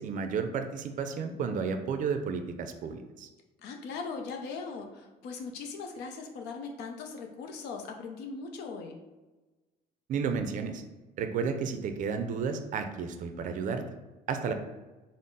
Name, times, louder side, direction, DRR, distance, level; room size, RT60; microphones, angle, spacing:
voice 1, 0.0-3.3 10.1-10.8 11.2-13.8 14.3-14.5, right 6 dB, 50° right, 7 dB, 0.4 m, -32 dB
voice 2, 3.6-9.0, left 4 dB, 80° left, 3 dB, 0.5 m, -39 dB
3.8 x 2.0 x 3.8 m, 1.2 s
cardioid pair, 110°, 17 cm